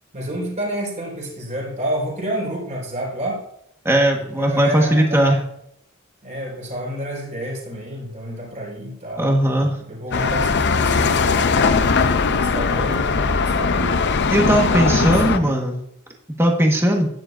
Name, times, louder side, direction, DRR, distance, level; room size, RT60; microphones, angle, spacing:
voice 1, 0.1-3.4 4.1-5.3 6.2-9.4 9.9-11.5 12.3-14.0 14.4-15.6, right 1 dB, 35° right, -3 dB, 4.4 m, -29 dB
voice 2, 3.8-5.4 9.2-9.7 14.3-15.7 16.4-17.1, right 1 dB, 10° right, 1 dB, 1.5 m, -18 dB
sound 1, 10.1-15.4, left 4 dB, 50° left, 0.6 m, -19 dB
12.0 x 10.0 x 2.6 m, 0.73 s
head